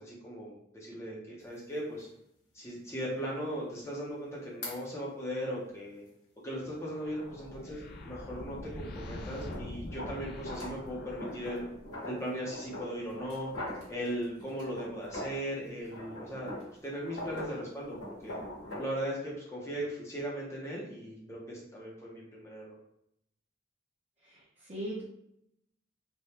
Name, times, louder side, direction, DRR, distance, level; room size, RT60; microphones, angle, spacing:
voice 1, 0.0-2.1 2.5-6.0 6.4-11.6 12.1-13.5 13.9-16.5 16.8-18.4 18.8-22.8, equal, 15° left, -4 dB, 0.7 m, -38 dB
sound 1, 1.4-1.5 2.0-2.1 4.6-4.8 9.3-15.5 15.8-19.0, left 1 dB, 85° left, 1.2 m, -42 dB
sound 2, 6.6-12.1, left 1 dB, 60° left, 0.4 m, -44 dB
voice 2, 24.2-25.0, right 1 dB, 35° right, -9 dB, 0.7 m, -39 dB
3.3 x 2.2 x 2.7 m, 0.75 s
head